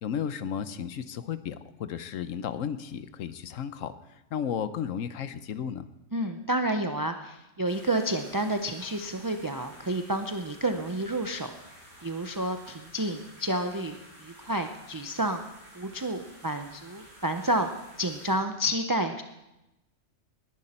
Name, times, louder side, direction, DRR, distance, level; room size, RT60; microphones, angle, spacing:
voice 1, 0.0-3.9 4.3-5.9, left 8 dB, 85° left, 12 dB, 1.2 m, -33 dB
voice 2, 6.1-11.5 12.0-15.4 15.7-17.7 18.0-19.2, right 1 dB, 25° right, 6 dB, 0.5 m, -30 dB
sound 1, 7.6-18.3, equal, 45° right, 7.6 m, -52 dB
20.0 x 11.0 x 4.3 m, 0.94 s
omnidirectional pair, 1.3 m